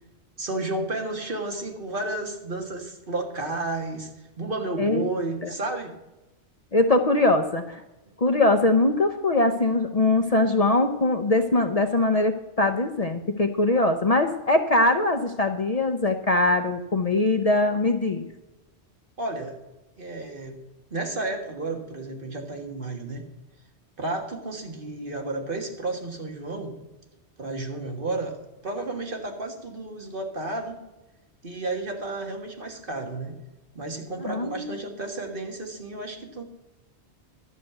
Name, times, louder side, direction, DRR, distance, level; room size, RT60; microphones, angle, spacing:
voice 1, 0.4-4.1 4.4-5.9 19.2-19.6 20.0-20.6 20.9-23.3 24.0-26.8 27.4-30.8 31.4-33.4 33.8-36.4, right 2 dB, 50° right, 2 dB, 1.9 m, -32 dB
voice 2, 6.7-7.8 8.2-18.3 34.2-34.7, left 2 dB, 40° left, 6 dB, 0.7 m, -22 dB
12.0 x 6.7 x 8.0 m, 1.0 s
omnidirectional pair, 1.2 m